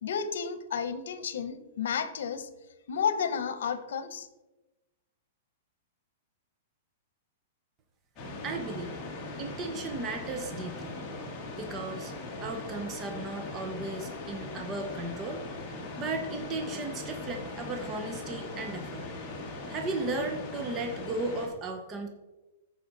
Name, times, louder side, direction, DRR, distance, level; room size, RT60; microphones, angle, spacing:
voice 1, 0.0-2.5 2.9-4.3, left 7 dB, 75° left, 12 dB, 0.9 m, -32 dB
sound 1, 8.2-21.5, left 2 dB, 20° left, 1.7 m, -40 dB
voice 2, 8.4-9.0 9.4-10.9 11.6-12.1 12.4-15.4 16.0-19.0 19.7-22.1, right 2 dB, 20° right, 4 dB, 0.8 m, -35 dB
14.0 x 5.0 x 4.1 m, 1.1 s
supercardioid pair, 170°, 0 cm